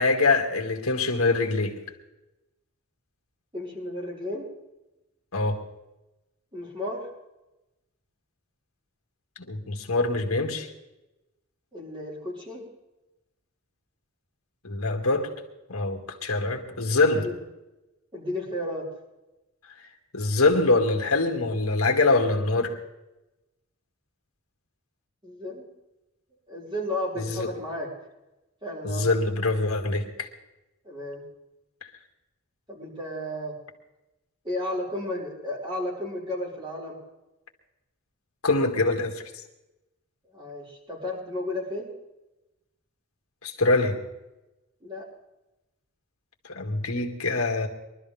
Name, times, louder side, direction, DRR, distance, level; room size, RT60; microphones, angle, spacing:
voice 1, 0.0-1.8 5.3-5.6 9.5-10.7 14.6-15.3 15.7-17.3 20.1-22.8 27.2-27.5 28.8-30.3 38.4-39.2 43.4-44.0 46.5-47.7, left 3 dB, 75° left, 2.4 m, -24 dB
voice 2, 3.5-4.5 6.5-7.1 11.7-12.6 17.1-17.4 18.1-18.9 25.2-25.7 26.5-27.9 28.6-29.1 30.8-31.3 32.7-33.6 34.4-37.0 40.3-41.9 44.8-45.0, left 1 dB, 20° right, 5.7 m, -33 dB
23.5 x 13.0 x 3.6 m
head